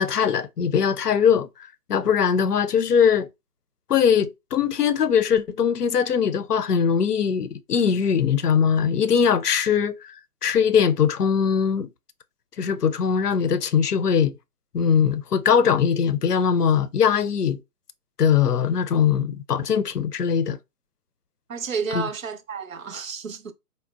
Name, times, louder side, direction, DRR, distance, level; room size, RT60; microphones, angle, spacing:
voice 1, 0.0-1.5 1.9-3.3 3.9-10.0 10.4-11.9 12.6-14.3 14.7-17.6 18.2-20.6 21.9-22.0, left 7 dB, 75° left, 0.6 m, -21 dB
voice 2, 21.5-23.5, right 5 dB, 55° right, 0.6 m, -31 dB
4.0 x 2.1 x 2.3 m
figure-of-eight pair, 135°, 48 cm